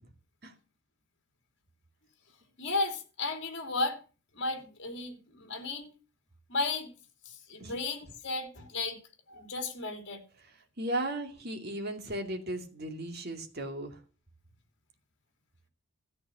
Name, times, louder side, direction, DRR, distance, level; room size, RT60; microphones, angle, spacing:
voice 1, 2.6-4.0 4.3-5.9 6.5-7.0 7.2-9.0 9.3-10.2, left 3 dB, 55° left, 2.8 m, -34 dB
voice 2, 10.4-14.0, right 1 dB, 45° right, 2.5 m, -36 dB
14.0 x 8.6 x 6.2 m
head